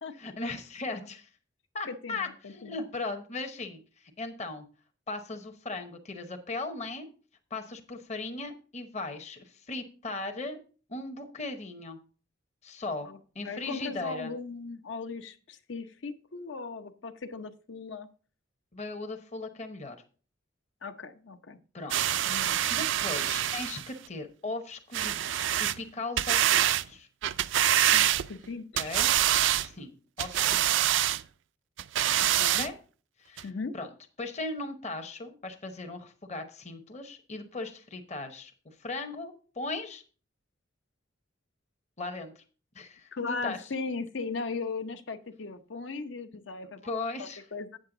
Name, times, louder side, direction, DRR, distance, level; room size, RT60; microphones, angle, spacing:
voice 1, 0.2-1.3 1.7-4.6 5.1-7.1 7.5-10.6 10.9-12.0 12.6-13.1 13.3-14.3 18.7-20.0 21.7-27.1 28.8-29.1 29.6-30.7 32.5-32.7 33.2-33.5 33.7-33.9 34.2-40.0 42.0-42.4 42.7-43.7 46.8-47.4, left 3 dB, 35° left, 6 dB, 0.9 m, -38 dB
voice 2, 1.9-2.8 13.0-13.2 13.4-18.1 20.8-21.6 22.2-22.6 27.9-28.9 32.2-32.7 33.4-33.7 43.1-46.9 47.2-47.8, left 4 dB, 70° left, 10 dB, 0.8 m, -38 dB
sound 1, 21.9-23.9 24.9-25.8 26.2-26.8 27.2-28.4 28.8-29.7 30.2-31.2 31.8-32.7 33.4-33.5, right 11 dB, 70° right, 0.4 m, -25 dB
8.3 x 7.5 x 3.8 m, 0.38 s
head